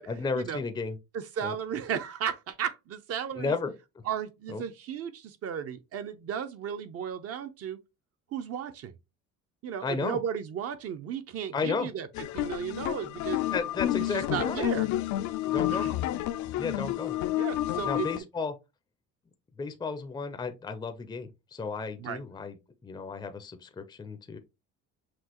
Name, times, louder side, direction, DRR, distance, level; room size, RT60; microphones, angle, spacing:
voice 1, 0.1-1.0 1.4-1.5 3.3-3.7 4.5-4.6 9.8-10.2 11.5-11.9 13.5-14.7 15.5-15.9 16.6-17.1 17.8-18.6 19.6-22.6 22.8-24.4, left 4 dB, 15° left, 0.5 m, -33 dB
voice 2, 1.1-3.5 4.1-7.8 8.3-8.9 9.6-12.1 12.3-13.4 14.1-14.9 15.5-15.9 17.3-18.1 22.0-22.2, right 8 dB, 50° right, 0.7 m, -34 dB
sound 1, 12.1-18.2, left 14 dB, 65° left, 0.5 m, -30 dB
6.0 x 2.4 x 2.9 m
cardioid pair, 115°, 31 cm